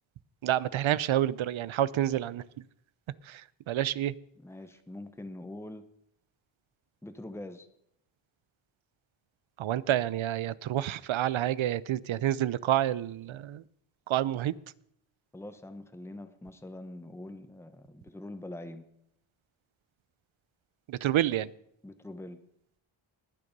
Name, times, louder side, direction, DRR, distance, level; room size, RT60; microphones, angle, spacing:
voice 1, 0.4-2.4 3.3-4.1 9.6-13.6 14.1-14.5 20.9-21.5, right 12 dB, 70° right, 19 dB, 0.6 m, -28 dB
voice 2, 4.4-5.8 7.0-7.7 15.3-18.9 21.8-22.4, left 1 dB, 5° left, 8 dB, 1.0 m, -44 dB
20.0 x 6.7 x 5.3 m, 0.75 s
wide cardioid pair, 105°, 49 cm